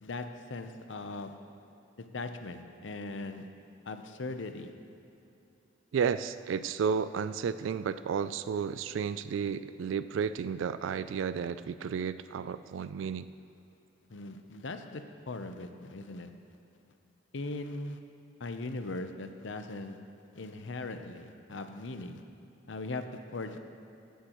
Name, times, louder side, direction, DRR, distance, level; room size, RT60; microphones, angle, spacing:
voice 1, 0.0-1.4 2.0-3.5 3.9-4.7 14.1-16.3 17.3-18.0 18.4-20.0 20.4-22.2 22.7-23.6, left 2 dB, 70° left, 8 dB, 0.7 m, -39 dB
voice 2, 5.9-13.3, right 6 dB, 75° right, 14 dB, 0.3 m, -32 dB
16.0 x 10.0 x 3.0 m, 2.8 s
head